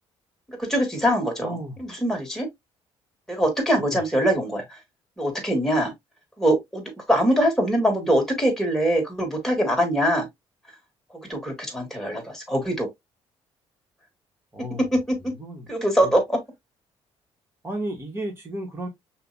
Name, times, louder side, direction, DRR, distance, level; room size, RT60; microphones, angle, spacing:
voice 1, 0.5-2.5 3.3-4.8 5.2-5.9 6.4-10.3 11.1-12.9 14.9-15.3 15.7-16.4, equal, 5° left, 2.3 m, -23 dB
voice 2, 1.4-1.8 3.8-4.0 14.5-14.9 15.3-15.7 16.0-16.1 17.6-18.9, right 1 dB, 20° right, 2.1 m, -33 dB
5.6 x 3.0 x 2.7 m
cardioid pair, 105°, 11 cm